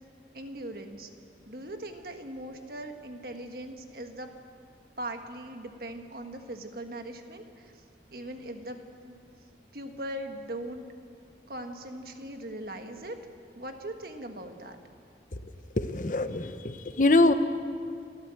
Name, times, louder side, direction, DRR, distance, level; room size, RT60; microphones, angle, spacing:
voice 1, 0.3-1.1 1.5-4.3 5.0-7.7 8.1-9.2 9.7-10.8 11.5-13.2 13.5-14.8, right 1 dB, 55° right, 5 dB, 1.6 m, -40 dB
voice 2, 15.7-17.3, left 2 dB, 45° left, 10 dB, 0.9 m, -24 dB
28.5 x 13.0 x 7.8 m, 2.3 s
head